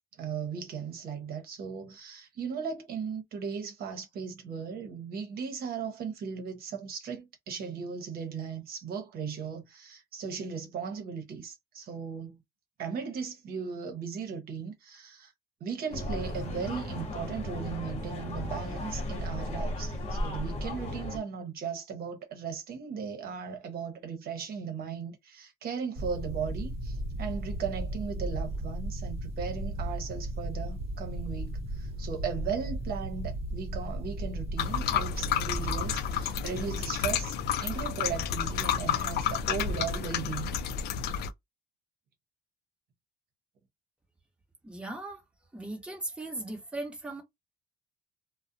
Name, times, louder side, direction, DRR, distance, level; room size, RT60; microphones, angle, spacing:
voice 1, 0.2-12.4 12.8-15.3 15.6-37.3 37.6-40.5, right 6 dB, 65° right, 0.8 m, -37 dB
sound 1, 15.9-21.2, left 1 dB, 40° left, 1.0 m, -35 dB
sound 2, 26.0-35.9, right 1 dB, 35° right, 0.9 m, -35 dB
sound 3, 34.6-41.3, left 8 dB, 70° left, 0.4 m, -30 dB
voice 2, 44.6-45.2 45.5-47.2, right 2 dB, 5° right, 0.9 m, -38 dB
2.4 x 2.1 x 2.6 m
cardioid pair, 110°, 17 cm